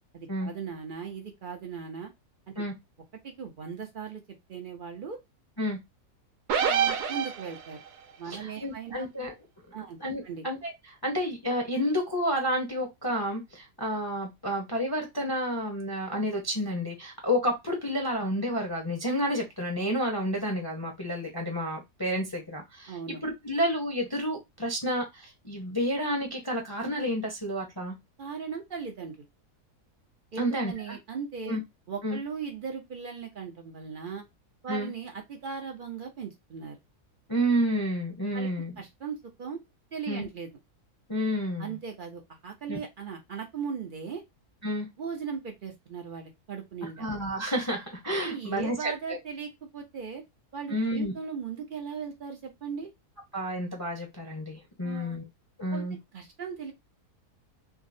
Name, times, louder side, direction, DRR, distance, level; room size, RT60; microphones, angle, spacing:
voice 1, 0.1-2.1 2.6-2.7 3.2-4.2 4.5-5.2 6.6-7.8 8.2-9.1 9.7-10.0 10.2-10.5 22.9-23.2 28.2-29.3 30.3-31.6 31.9-34.2 34.6-36.8 38.3-38.5 38.8-39.6 39.9-40.5 41.6-44.2 45.0-47.0 48.2-50.2 50.5-52.9 54.8-55.2 55.7-55.9 56.1-56.7, right 6 dB, 60° right, 0.5 m, -38 dB
sound 1, 6.5-7.9, right 7 dB, 85° right, 1.3 m, -26 dB
voice 2, 8.3-9.3 10.0-23.0 23.2-28.0 30.4-31.0 31.4-31.6 32.0-32.2 34.7-34.9 37.3-38.8 40.1-40.3 41.1-41.8 42.7-42.8 44.6-44.9 46.8-49.2 50.7-51.1 53.3-55.2 55.6-56.0, equal, 25° left, 0.6 m, -30 dB
3.6 x 2.0 x 2.5 m
omnidirectional pair, 1.7 m